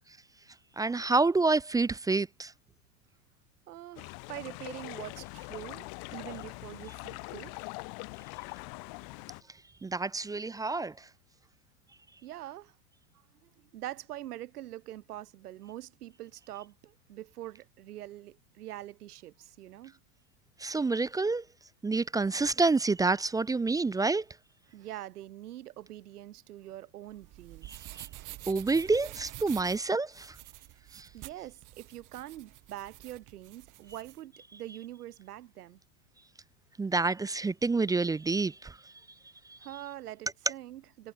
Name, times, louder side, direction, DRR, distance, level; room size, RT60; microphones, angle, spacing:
voice 1, 0.8-2.5 9.8-10.9 20.6-21.4 21.8-24.2 27.7-28.1 28.5-30.4 30.9-31.1 36.8-38.8 39.5-39.6, right 3 dB, 10° right, 0.6 m, -28 dB
voice 2, 3.7-7.7 12.2-12.8 13.4-20.0 24.7-27.9 31.1-35.8 39.6-41.1, right 14 dB, 80° right, 3.0 m, -44 dB
sound 1, 4.0-9.4, left 32 dB, 55° left, 4.5 m, -43 dB
sound 2, 27.1-34.2, right 17 dB, 45° right, 5.1 m, -48 dB
hypercardioid pair, 120°, 45 cm